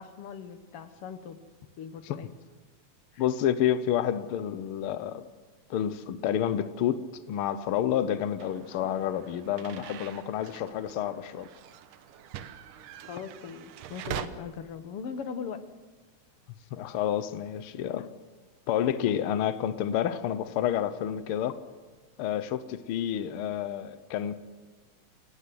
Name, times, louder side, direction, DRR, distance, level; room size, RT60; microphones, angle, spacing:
voice 1, 0.0-1.4 1.8-2.3 3.1-3.2 13.1-15.6, left 6 dB, 55° left, 1.9 m, -40 dB
voice 2, 3.2-5.2 5.7-7.0 7.3-11.5 16.7-18.1 18.7-21.5 22.2-24.4, left 10 dB, 80° left, 1.2 m, -29 dB
sound 1, 8.4-14.3, right 11 dB, 85° right, 2.5 m, -43 dB
28.0 x 16.5 x 7.8 m
omnidirectional pair, 3.6 m